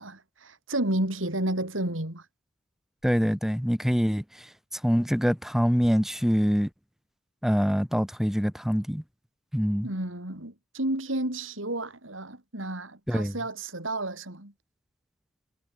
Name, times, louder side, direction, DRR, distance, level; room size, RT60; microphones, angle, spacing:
voice 1, 0.0-2.2 9.8-14.5, right 1 dB, 80° right, 5.0 m, -31 dB
voice 2, 3.0-4.5 4.7-6.7 7.4-9.0 9.5-9.9 13.1-13.3, equal, ahead, 1.5 m, -25 dB
head